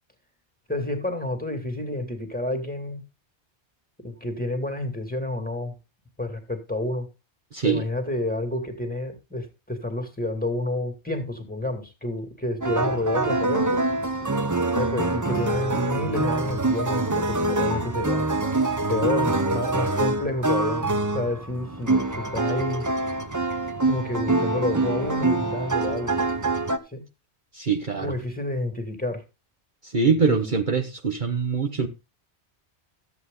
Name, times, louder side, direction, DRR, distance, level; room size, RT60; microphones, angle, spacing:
voice 1, 0.7-3.0 4.0-5.8 6.2-7.1 7.6-13.8 14.7-18.2 18.9-22.8 23.9-26.2 26.9-27.0 28.0-29.2 30.3-30.5, left 1 dB, 5° left, 2.4 m, -29 dB
voice 2, 7.5-7.8 27.5-28.1 29.8-31.9, right 5 dB, 45° right, 1.2 m, -23 dB
sound 1, 12.6-26.8, right 2 dB, 20° right, 0.8 m, -25 dB
13.5 x 8.3 x 3.8 m
omnidirectional pair, 1.2 m